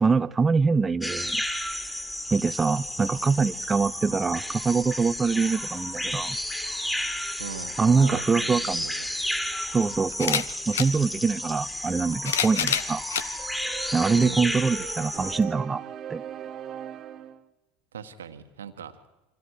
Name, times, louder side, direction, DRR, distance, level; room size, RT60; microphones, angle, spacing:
voice 1, 0.0-1.4 2.3-6.4 7.8-8.8 9.7-13.0 13.9-15.8 16.1-16.2, right 4 dB, 20° right, 11 dB, 0.7 m, -24 dB
sound 1, 1.0-15.4, left 1 dB, 10° left, 3.0 m, -32 dB
voice 2, 7.4-9.1 14.1-14.5 17.9-19.0, right 7 dB, 80° right, 8 dB, 1.5 m, -40 dB
sound 2, 8.7-8.8 10.1-10.9 11.9-13.3 14.0-14.1 15.4-15.5, left 8 dB, 75° left, 1.0 m, -27 dB
sound 3, 13.4-17.4, right 9 dB, 40° right, 1.4 m, -39 dB
28.5 x 25.5 x 4.9 m, 1.1 s
figure-of-eight pair, 75°, 0 cm